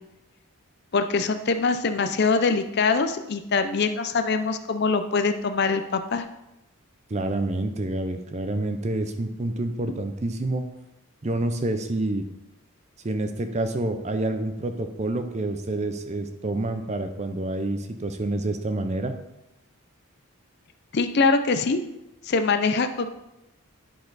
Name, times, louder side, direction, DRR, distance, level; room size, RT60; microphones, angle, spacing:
voice 1, 0.9-6.3 20.9-21.8 22.2-23.1, left 4 dB, 50° left, 8 dB, 0.5 m, -23 dB
voice 2, 7.1-10.6 11.2-12.2 13.0-19.1, right 2 dB, 30° right, 8 dB, 0.5 m, -28 dB
10.5 x 4.3 x 4.0 m, 0.90 s
head